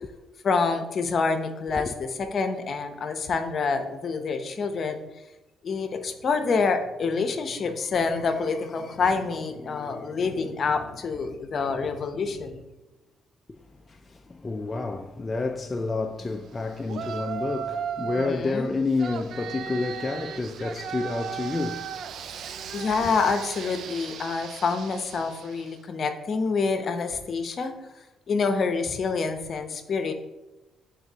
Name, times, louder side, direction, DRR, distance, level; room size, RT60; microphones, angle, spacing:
voice 1, 0.4-5.0 5.6-12.6 18.2-18.7 22.7-27.7 28.3-30.1, left 4 dB, 50° left, 0.7 m, -27 dB
voice 2, 13.9-21.9 22.7-23.1, left 3 dB, 30° left, 0.4 m, -29 dB
Yell, 16.9-18.4 19.0-25.7, right 7 dB, 65° right, 0.4 m, -36 dB
9.3 x 3.8 x 2.8 m
cardioid pair, 90°, 0 cm